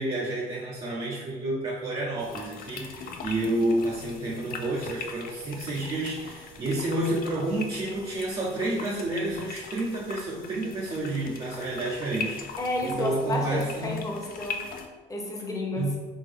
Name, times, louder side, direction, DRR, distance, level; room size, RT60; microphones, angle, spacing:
voice 1, 0.0-14.0 15.7-16.1, right 2 dB, 30° right, -4 dB, 0.6 m, -30 dB
sound 1, 2.2-14.9, left 5 dB, 60° left, 0.5 m, -41 dB
voice 2, 12.6-14.7 15.1-15.9, left 2 dB, 20° left, 0 dB, 0.8 m, -31 dB
3.5 x 3.5 x 3.4 m, 1.3 s
cardioid pair, 110°, 17 cm